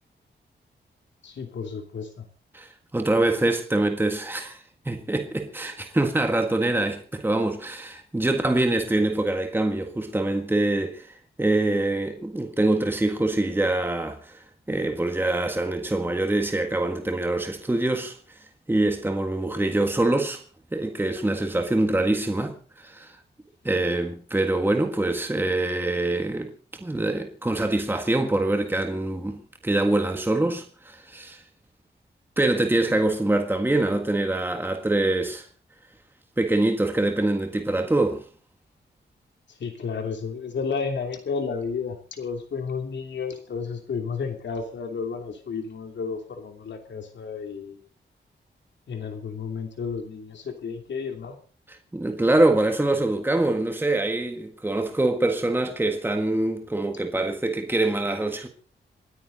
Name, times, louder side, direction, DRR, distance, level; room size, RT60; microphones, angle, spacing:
voice 1, 1.2-2.2 39.6-47.8 48.9-51.4, left 5 dB, 75° left, 3.0 m, -32 dB
voice 2, 2.5-14.4 14.7-18.2 18.7-20.4 20.7-23.1 23.6-26.5 26.8-31.4 32.4-35.5 36.4-38.2 51.7-58.5, right 2 dB, 10° right, 1.6 m, -24 dB
27.5 x 9.6 x 4.0 m
wide cardioid pair, 135°, 19 cm